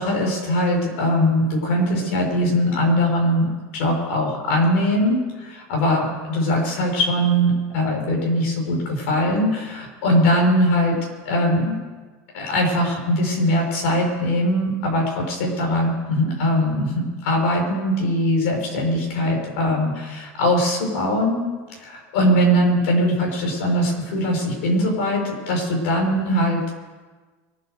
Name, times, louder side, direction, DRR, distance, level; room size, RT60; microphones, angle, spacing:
voice 1, 0.0-3.5 3.7-10.9 11.2-11.8 12.3-21.4 21.8-26.7, equal, 85° left, 0 dB, 6.3 m, -21 dB
24.0 x 8.2 x 6.8 m, 1.3 s
cardioid pair, 155°, 7 cm